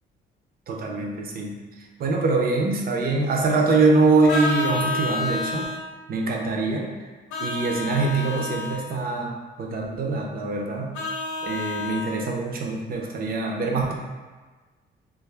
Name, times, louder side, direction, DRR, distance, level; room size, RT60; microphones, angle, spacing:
voice 1, 0.7-1.5 2.0-5.6 6.1-6.9 7.4-9.3 9.6-10.9 11.4-13.9, right 3 dB, 50° right, -1 dB, 0.5 m, -23 dB
Vehicle horn car horn honking, 4.3-5.8 7.3-8.8 10.9-12.1, left 3 dB, 80° left, 0.6 m, -29 dB
2.2 x 2.0 x 3.2 m, 1.3 s
cardioid pair, 90°, 20 cm